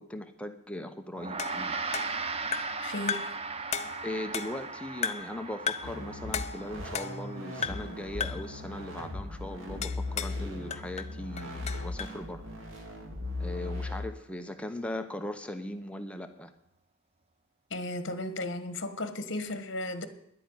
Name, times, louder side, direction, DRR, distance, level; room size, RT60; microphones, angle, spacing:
voice 1, 0.0-1.7 4.0-12.4 13.4-16.5, left 1 dB, 5° left, 0.8 m, -39 dB
Gong, 1.2-10.8, right 4 dB, 30° right, 0.7 m, -39 dB
sound 1, 1.4-2.8 3.1-3.4 3.7-4.7 5.0-5.4 5.7-6.0 6.3-7.3 7.6-7.9 8.2-8.5 9.8-10.4 10.7-12.2, left 7 dB, 30° left, 0.5 m, -35 dB
voice 2, 2.8-3.3 17.7-20.1, left 2 dB, 60° left, 1.4 m, -35 dB
sound 2, 5.8-14.1, left 2 dB, 70° right, 2.2 m, -38 dB
10.5 x 8.6 x 9.6 m
head